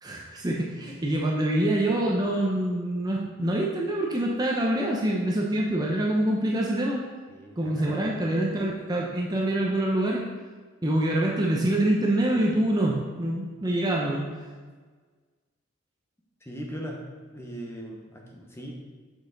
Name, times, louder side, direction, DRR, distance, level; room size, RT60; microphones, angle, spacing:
voice 1, 0.0-7.0 7.6-10.2 10.8-14.2, right 1 dB, 20° right, -2 dB, 0.7 m, -25 dB
voice 2, 7.3-8.1 16.4-17.1 17.3-18.7, equal, 10° left, 0 dB, 0.9 m, -39 dB
6.4 x 6.0 x 3.9 m, 1.5 s
head